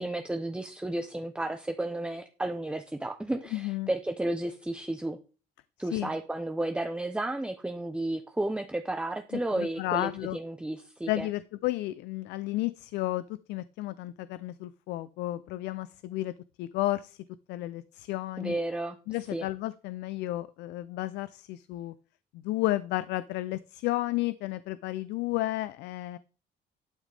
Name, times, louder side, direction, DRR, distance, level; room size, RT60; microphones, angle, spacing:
voice 1, 0.0-5.2 5.8-11.3 18.4-19.0 19.3-19.5, right 1 dB, 5° right, 7 dB, 0.8 m, -32 dB
voice 2, 3.5-3.9 5.8-6.1 9.3-10.4 11.1-13.2 13.5-16.3 16.6-17.2 17.5-18.6 19.1-21.9 22.4-26.2, left 16 dB, 85° left, 16 dB, 0.5 m, -32 dB
11.5 x 6.2 x 3.4 m, 0.35 s
cardioid pair, 110°, 17 cm